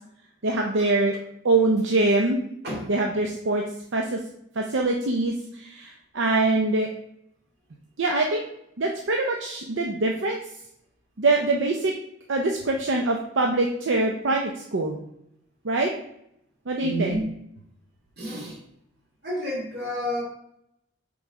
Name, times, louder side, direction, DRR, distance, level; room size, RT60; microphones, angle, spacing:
voice 1, 0.4-1.1 1.4-2.4 2.9-3.6 3.9-4.2 4.6-6.9 8.0-8.4 8.8-10.4 11.2-11.9 12.3-15.0 15.6-15.9 16.7-17.2, right 2 dB, 80° right, 1 dB, 0.6 m, -24 dB
voice 2, 16.8-17.3 18.2-18.6 19.2-20.2, equal, 55° right, -4 dB, 2.7 m, -29 dB
6.4 x 3.9 x 4.8 m, 0.75 s
head